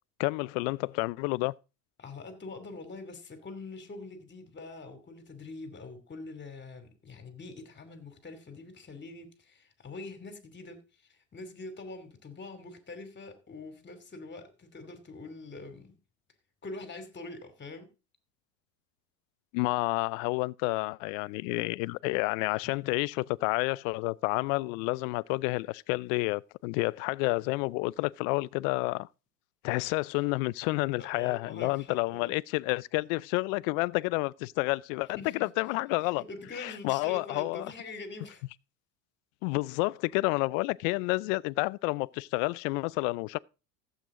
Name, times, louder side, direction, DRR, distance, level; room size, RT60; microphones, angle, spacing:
voice 1, 0.2-1.5 19.5-29.1 29.6-36.2 36.6-37.7 39.4-43.4, left 24 dB, 55° left, 0.5 m, -30 dB
voice 2, 2.0-16.0 16.6-17.9 22.8-22.9 31.0-32.3 35.2-38.4, left 3 dB, 20° left, 2.8 m, -44 dB
15.0 x 8.0 x 3.8 m
hypercardioid pair, 90°, 48 cm